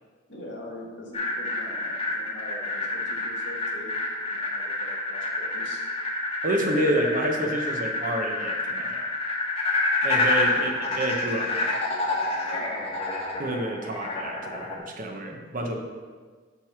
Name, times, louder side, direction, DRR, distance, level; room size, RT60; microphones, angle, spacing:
voice 1, 0.3-4.0 4.3-5.8 10.4-10.6 12.4-13.1, left 1 dB, 70° left, -1 dB, 1.4 m, -42 dB
sound 1, 1.1-14.8, left 2 dB, 35° left, 1.0 m, -28 dB
voice 2, 6.4-9.1 10.0-11.7 13.4-15.8, right 1 dB, 45° right, 2 dB, 0.9 m, -28 dB
5.2 x 4.6 x 6.0 m, 1.5 s
head